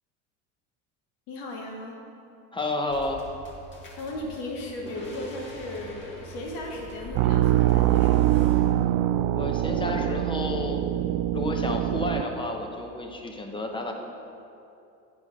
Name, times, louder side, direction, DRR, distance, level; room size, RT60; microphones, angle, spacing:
voice 1, 1.3-2.0 3.9-8.5, left 1 dB, 65° left, -1 dB, 1.9 m, -36 dB
voice 2, 2.5-3.2 9.3-10.8 11.3-13.9, left 2 dB, 15° left, 2 dB, 1.0 m, -31 dB
sound 1, 2.9-8.7, equal, 30° left, 2.1 m, -43 dB
sound 2, 7.2-12.2, right 13 dB, 55° right, 0.4 m, -23 dB
9.6 x 4.8 x 5.3 m, 2.7 s
hypercardioid pair, 90°, 38 cm